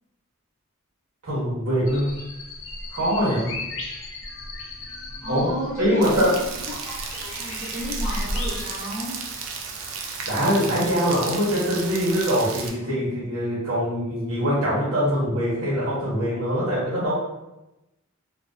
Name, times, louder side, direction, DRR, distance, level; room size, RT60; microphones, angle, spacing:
voice 1, 1.2-2.2 2.9-3.7 5.3-5.5 5.8-6.3 10.2-17.1, equal, 85° right, -9 dB, 0.9 m, -23 dB
sound 1, 1.9-8.7, left 1 dB, 60° left, 0.4 m, -35 dB
voice 2, 5.2-6.3 6.6-9.2, left 1 dB, 15° right, -10 dB, 0.6 m, -33 dB
Rain, 6.0-12.7, right 5 dB, 65° right, 0.3 m, -34 dB
2.5 x 2.2 x 2.2 m, 0.94 s
head